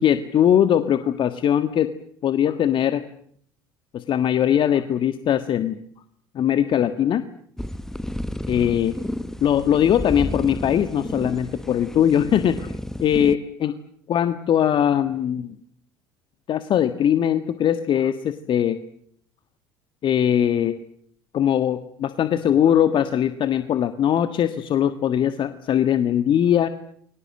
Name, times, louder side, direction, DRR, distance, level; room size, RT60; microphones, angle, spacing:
voice 1, 0.0-1.9 2.2-3.0 3.9-5.8 6.3-7.2 8.5-9.0 9.4-12.7 13.0-13.7 14.1-15.5 16.5-18.8 20.0-20.8 21.3-26.7, left 9 dB, 45° left, 10 dB, 1.6 m, -21 dB
sound 1, 7.6-13.3, left 1 dB, 5° left, 1.4 m, -32 dB
30.0 x 23.5 x 7.7 m, 0.66 s
hypercardioid pair, 65°, 12 cm